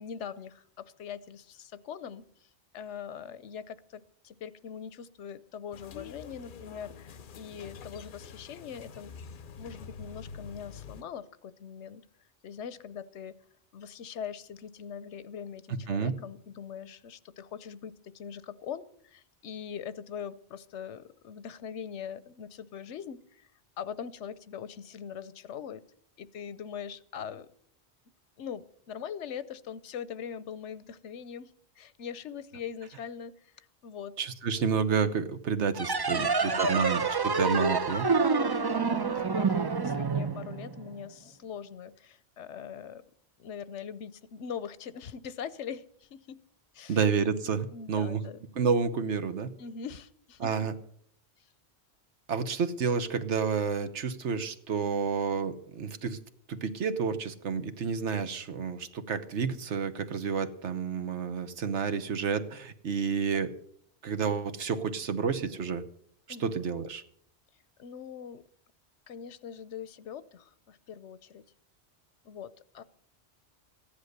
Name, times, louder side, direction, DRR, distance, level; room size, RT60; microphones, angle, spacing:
voice 1, 0.0-2.2 2.7-9.1 9.6-12.0 12.4-13.4 13.7-23.5 23.8-25.8 26.2-27.5 28.4-34.1 36.1-36.9 38.1-39.0 39.4-43.0 43.4-46.4 46.7-47.0 47.7-48.8 49.6-50.7 66.3-66.5 67.8-68.4 69.1-71.4 72.2-72.8, left 7 dB, 85° left, 16 dB, 1.1 m, -42 dB
sound 1, 5.7-11.0, left 6 dB, 55° left, 0.8 m, -46 dB
voice 2, 34.2-38.1 46.9-48.2 48.5-49.5 50.4-50.7 52.3-56.2 56.5-63.5 64.0-65.8 66.4-67.0, right 6 dB, 80° right, 10 dB, 1.3 m, -30 dB
sound 2, 35.7-41.0, right 4 dB, 35° right, 0.4 m, -27 dB
15.0 x 10.5 x 6.6 m, 0.64 s
omnidirectional pair, 1.2 m